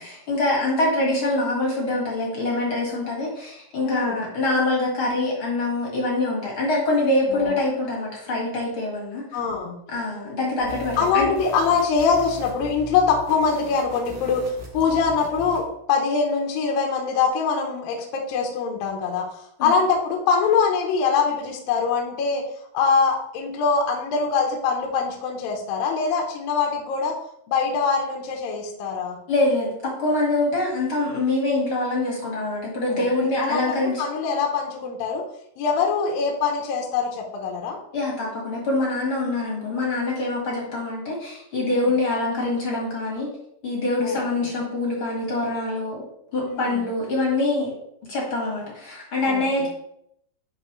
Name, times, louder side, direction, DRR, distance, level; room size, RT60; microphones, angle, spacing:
voice 1, 0.0-9.4 9.9-11.3 19.6-19.7 29.3-34.0 37.9-43.3 43.6-46.0 46.3-47.7 48.1-49.7, left 2 dB, 45° left, -2 dB, 1.9 m, -24 dB
voice 2, 3.8-4.2 7.3-7.5 9.3-9.8 11.0-22.4 22.7-27.1 27.5-29.2 32.9-33.1 33.4-33.7 34.0-35.2 35.6-37.8 41.7-41.9 44.0-44.2 46.5-46.9 49.3-49.7, left 5 dB, 70° left, 0 dB, 2.5 m, -23 dB
sound 1, 10.6-15.7, left 2 dB, 80° right, 5.5 m, -40 dB
11.0 x 4.3 x 3.2 m, 0.73 s
omnidirectional pair, 4.6 m